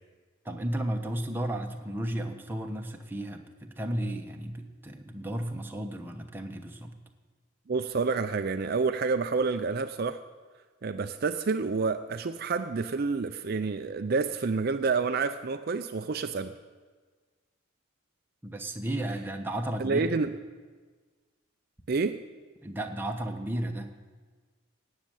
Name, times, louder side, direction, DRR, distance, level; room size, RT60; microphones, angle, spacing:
voice 1, 0.4-6.9 18.4-20.1 22.6-23.9, right 1 dB, 10° right, 3 dB, 1.0 m, -33 dB
voice 2, 7.7-10.2 10.8-16.5 19.8-20.3 21.9-22.2, right 4 dB, 50° right, 9 dB, 0.5 m, -28 dB
17.5 x 6.6 x 9.1 m, 1.4 s
head